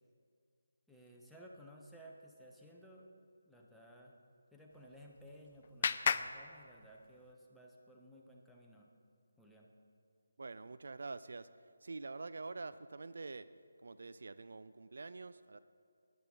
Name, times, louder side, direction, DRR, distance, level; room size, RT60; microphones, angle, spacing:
voice 1, 0.9-3.1 3.5-4.1 4.5-8.9 9.4-9.7, equal, ahead, -3 dB, 0.9 m, -57 dB
Clapping, 4.7-7.3, left 6 dB, 40° left, 0.4 m, -38 dB
voice 2, 10.4-11.5 11.8-13.5 13.8-15.6, right 3 dB, 60° right, 14 dB, 0.3 m, -46 dB
12.5 x 10.0 x 3.8 m, 2.3 s
figure-of-eight pair, 155°, 0 cm